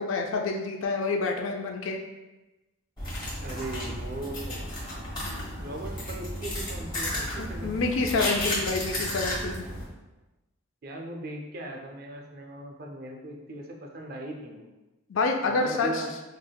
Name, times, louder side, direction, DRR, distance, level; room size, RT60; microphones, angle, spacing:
voice 1, 0.0-2.0 5.2-5.5 7.4-9.7 15.1-16.0, left 3 dB, 65° left, 3 dB, 0.4 m, -28 dB
sound 1, 3.0-9.8, left 1 dB, 20° left, 0.9 m, -33 dB
voice 2, 3.4-4.6 5.6-8.0 10.8-14.7 15.5-16.1, right 2 dB, 45° right, 1 dB, 0.4 m, -39 dB
5.0 x 2.1 x 2.2 m, 1.1 s
head